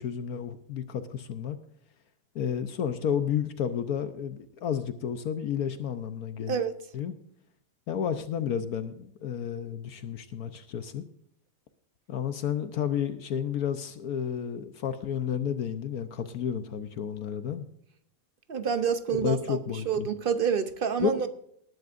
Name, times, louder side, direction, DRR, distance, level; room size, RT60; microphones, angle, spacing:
voice 1, 0.0-1.6 2.3-6.6 6.9-7.1 7.9-11.0 12.1-17.6 19.2-20.1 21.0-21.3, left 8 dB, 65° left, 1.2 m, -31 dB
voice 2, 18.5-19.6 19.9-21.3, right 7 dB, 55° right, 0.6 m, -27 dB
19.5 x 10.5 x 2.5 m
omnidirectional pair, 1.8 m